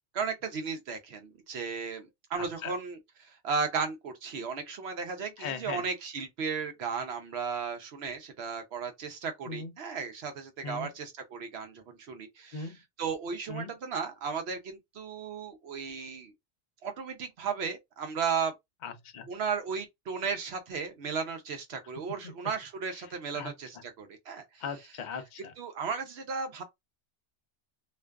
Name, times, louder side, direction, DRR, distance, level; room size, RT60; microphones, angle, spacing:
voice 1, 0.1-16.3 16.8-18.5 19.3-24.6 25.6-26.6, right 5 dB, 65° right, 0.8 m, -35 dB
voice 2, 2.4-2.7 5.4-5.8 9.5-9.7 10.6-10.9 12.5-12.8 13.5-13.7 18.8-19.3 22.0-22.4 23.3-23.5 24.6-25.5, left 5 dB, 55° left, 0.5 m, -39 dB
2.5 x 2.3 x 2.2 m
omnidirectional pair, 1.2 m